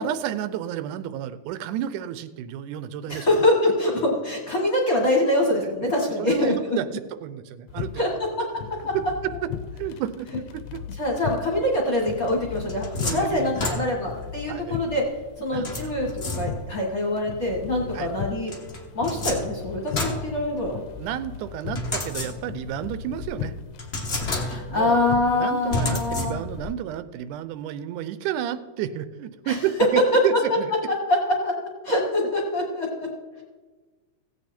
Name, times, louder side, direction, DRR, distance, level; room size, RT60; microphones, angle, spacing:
voice 1, 0.0-3.3 5.6-5.7 6.2-8.1 9.2-9.5 9.8-10.3 10.5-10.8 13.0-13.8 14.5-14.8 15.5-15.9 17.9-18.1 21.0-23.5 24.7-30.7, right 10 dB, 85° right, 13 dB, 2.1 m, -31 dB
voice 2, 3.1-6.8 8.0-8.9 11.0-15.0 15.4-18.5 18.9-20.8 24.2-26.4 29.4-29.6 30.1-30.2 30.9-31.5 31.8-33.1, left 1 dB, 35° left, -2 dB, 1.5 m, -24 dB
sound 1, 7.7-26.7, left 8 dB, 85° left, 2.0 m, -38 dB
sound 2, 12.3-14.2 15.6-16.8 18.5-21.0 21.7-22.7 23.2-23.3 23.8-24.9 25.7-26.7, left 2 dB, 55° left, 0.7 m, -31 dB
16.0 x 8.1 x 4.3 m, 1.3 s
omnidirectional pair, 3.5 m